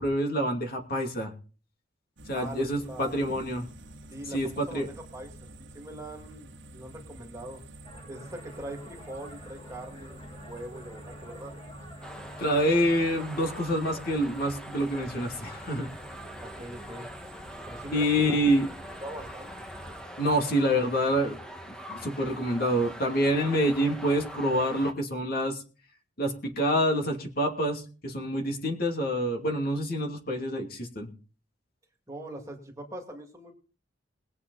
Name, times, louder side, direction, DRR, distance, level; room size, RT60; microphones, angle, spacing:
voice 1, 0.0-1.3 2.3-3.7 4.3-4.9 12.4-15.9 17.9-18.7 20.2-21.4 21.6-25.6 26.2-31.1, equal, 50° left, 2 dB, 2.7 m, -27 dB
sound 1, 2.2-20.0, right 1 dB, 65° right, 1.9 m, -48 dB
voice 2, 2.3-3.2 4.1-7.6 8.1-11.5 16.4-17.1 17.7-18.4 19.0-19.6 32.1-33.5, right 1 dB, 15° right, 1 dB, 2.4 m, -42 dB
sound 2, 7.8-13.1, equal, 25° left, 3.7 m, -50 dB
sound 3, 12.0-24.9, equal, 5° left, 1.5 m, -43 dB
21.0 x 8.2 x 4.1 m, 0.37 s
head